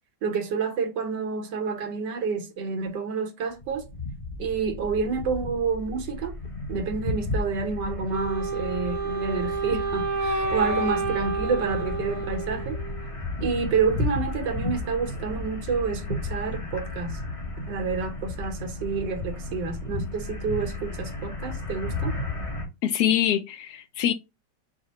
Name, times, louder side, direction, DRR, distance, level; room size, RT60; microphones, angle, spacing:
voice 1, 0.2-3.8 4.4-6.3 6.7-12.8 13.4-17.2 17.7-22.1, right 5 dB, 85° right, 1.6 m, -29 dB
sound 1, 3.6-22.7, left 2 dB, 30° left, 0.7 m, -33 dB
Wind instrument woodwind instrument, 8.1-13.2, right 3 dB, 55° right, 1.0 m, -30 dB
voice 2, 22.8-24.1, left 10 dB, 75° left, 1.1 m, -24 dB
4.8 x 2.1 x 4.0 m
omnidirectional pair, 1.8 m